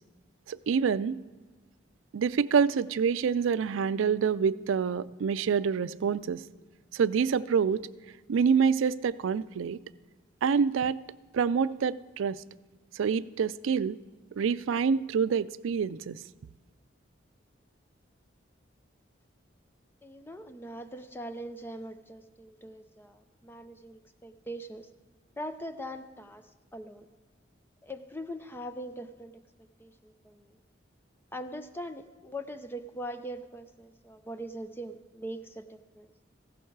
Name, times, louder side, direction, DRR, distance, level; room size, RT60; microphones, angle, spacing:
voice 1, 0.5-1.2 2.1-6.4 6.9-7.8 8.3-9.8 10.4-11.0 11.3-12.4 13.0-14.0 14.4-16.2, right 6 dB, 85° right, 17 dB, 0.4 m, -26 dB
voice 2, 20.0-24.9 25.4-26.4 26.7-27.1 27.8-29.3 29.8-30.6 31.3-36.1, equal, 10° left, 9 dB, 0.5 m, -41 dB
15.0 x 12.0 x 4.6 m, 1.3 s
head